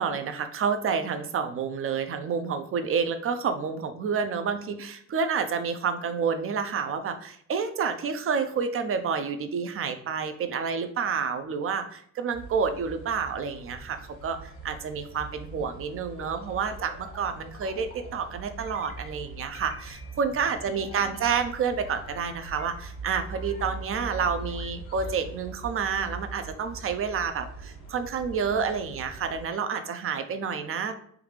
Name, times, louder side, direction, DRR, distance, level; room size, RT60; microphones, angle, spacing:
voice 1, 0.0-30.9, right 6 dB, 45° right, 9 dB, 0.5 m, -29 dB
sound 1, 12.3-29.4, right 3 dB, 85° left, 1.4 m, -42 dB
sound 2, 16.2-18.3 18.6-19.3 19.5-21.4 21.8-25.2, left 4 dB, 55° left, 0.7 m, -50 dB
3.5 x 2.4 x 3.2 m, 0.65 s
cardioid pair, 90°, 30 cm